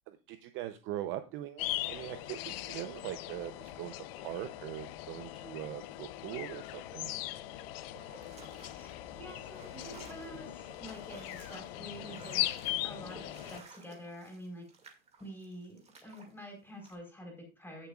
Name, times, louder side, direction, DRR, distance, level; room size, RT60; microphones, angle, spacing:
voice 1, 0.1-7.1, right 13 dB, 35° right, 10 dB, 0.7 m, -41 dB
sound 1, 1.6-13.6, left 15 dB, 55° left, 0.8 m, -40 dB
sound 2, 7.9-16.3 16.8-16.9, right 4 dB, 15° right, 2.3 m, -55 dB
voice 2, 8.7-12.5 12.8-14.7 15.2-17.9, equal, 5° left, 2 dB, 4.4 m, -47 dB
17.0 x 7.0 x 2.4 m, 0.30 s
supercardioid pair, 140°, 37 cm